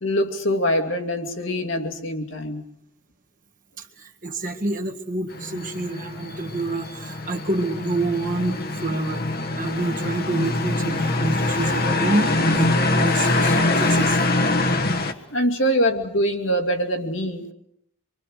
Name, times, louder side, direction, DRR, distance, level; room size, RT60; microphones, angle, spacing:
voice 1, 0.0-2.6 4.2-4.3 15.3-17.5, equal, 75° left, 3 dB, 2.6 m, -24 dB
voice 2, 3.8-9.2 9.6-14.2, right 2 dB, 40° right, 3 dB, 1.9 m, -28 dB
sound 1, 5.3-15.1, left 2 dB, 50° left, 1.5 m, -23 dB
26.0 x 23.5 x 6.6 m, 0.73 s
head